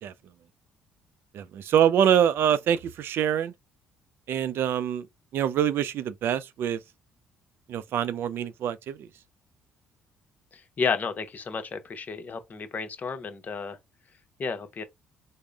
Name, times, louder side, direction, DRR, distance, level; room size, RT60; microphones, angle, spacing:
voice 1, 1.3-3.5 4.3-5.1 5.3-6.8 7.7-9.1, right 9 dB, 65° right, 0.4 m, -25 dB
voice 2, 10.5-13.8 14.4-14.8, left 5 dB, 40° left, 0.8 m, -32 dB
3.6 x 2.1 x 3.3 m
supercardioid pair, 60°, 4 cm